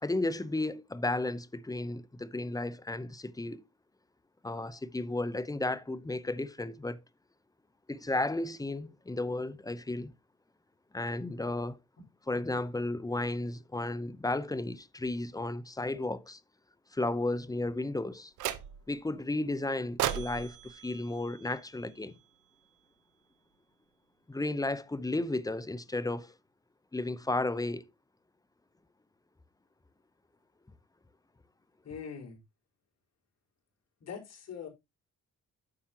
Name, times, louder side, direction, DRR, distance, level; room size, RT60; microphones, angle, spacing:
voice 1, 0.0-3.6 4.4-7.0 7.9-10.1 10.9-11.8 12.3-16.4 16.9-18.3 18.9-22.1 24.3-26.3 26.9-27.9, left 2 dB, 10° left, 0.7 m, -33 dB
sound 1, 18.4-19.0 20.0-22.2, right 12 dB, 85° right, 1.0 m, -37 dB
voice 2, 31.8-32.4 34.0-34.7, left 7 dB, 55° left, 4.8 m, -42 dB
9.7 x 7.2 x 2.9 m
cardioid pair, 90°, 30 cm